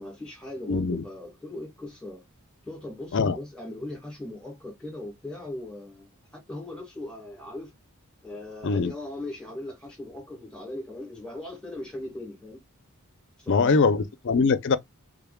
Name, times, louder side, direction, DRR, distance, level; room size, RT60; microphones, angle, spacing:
voice 1, 0.0-2.2 2.7-7.7 8.2-12.6 13.4-14.1, left 1 dB, 5° left, 1.8 m, -39 dB
voice 2, 0.7-1.0 3.1-3.4 8.6-8.9 13.5-14.8, left 4 dB, 55° left, 0.5 m, -22 dB
3.6 x 3.5 x 2.3 m
head